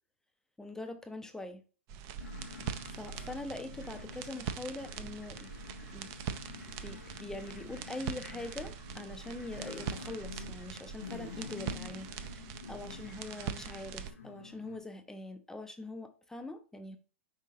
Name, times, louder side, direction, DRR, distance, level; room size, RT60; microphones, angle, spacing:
voice 1, 0.6-1.6 2.8-5.5 5.9-6.4 6.8-17.0, left 2 dB, 5° left, 0.4 m, -43 dB
sound 1, 1.9-14.1, right 8 dB, 45° right, 0.5 m, -42 dB
sound 2, 2.2-14.8, left 6 dB, 90° left, 0.5 m, -48 dB
5.1 x 3.7 x 2.7 m
hypercardioid pair, 110°, 7 cm